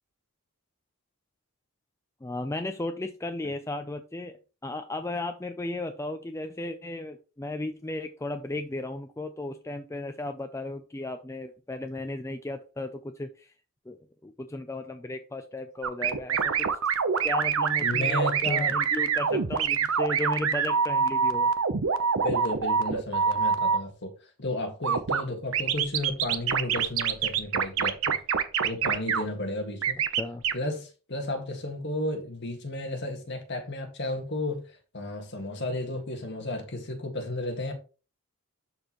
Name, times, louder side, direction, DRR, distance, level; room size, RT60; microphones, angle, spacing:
voice 1, 2.2-4.4 4.6-13.5 13.9-14.0 14.2-16.7 17.2-21.5 30.2-30.4, left 2 dB, 15° left, 0.4 m, -35 dB
sound 1, 15.8-23.8 24.8-25.2 25.5-29.2 29.8-30.5, right 6 dB, 65° right, 0.7 m, -25 dB
voice 2, 17.8-18.8 19.3-19.4 22.1-28.2 28.6-30.0 30.5-34.6 34.9-37.7, left 1 dB, 50° left, 1.7 m, -33 dB
11.5 x 4.3 x 3.0 m
head